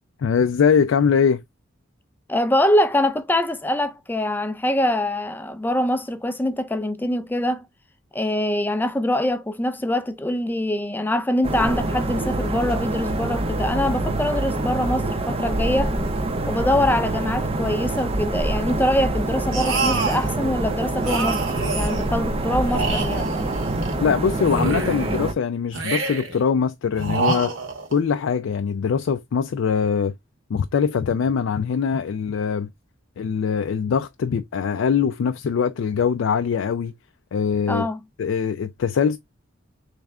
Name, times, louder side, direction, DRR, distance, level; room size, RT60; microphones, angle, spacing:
voice 1, 0.2-1.4 24.0-27.5 27.9-30.1 30.5-32.7 33.2-36.9 37.3-37.9 38.2-39.2, left 6 dB, 70° left, 0.4 m, -22 dB
voice 2, 2.3-7.7 8.1-16.0 16.5-21.4 21.7-23.3 37.7-38.0, left 1 dB, 10° left, 0.4 m, -23 dB
sound 1, 11.4-25.3, right 2 dB, 30° right, 0.6 m, -25 dB
sound 2, 19.5-20.3 21.0-22.1 22.6-24.0 24.4-25.2 25.7-26.4 27.0-28.0, right 3 dB, 75° right, 1.4 m, -27 dB
3.5 x 3.3 x 3.4 m
head